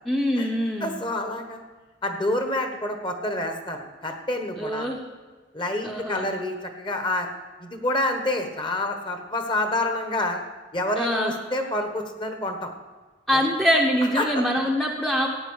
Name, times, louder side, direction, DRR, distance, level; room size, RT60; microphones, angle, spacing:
voice 1, 0.1-1.0 4.6-5.0 5.8-6.3 11.0-11.3 13.3-15.3, equal, ahead, 0 dB, 0.8 m, -24 dB
voice 2, 0.8-1.6 2.0-4.9 5.5-7.3 7.6-10.4 10.7-12.7 13.3-13.4 14.1-14.4, left 1 dB, 25° left, 5 dB, 1.2 m, -28 dB
14.5 x 9.3 x 6.4 m, 1.3 s
head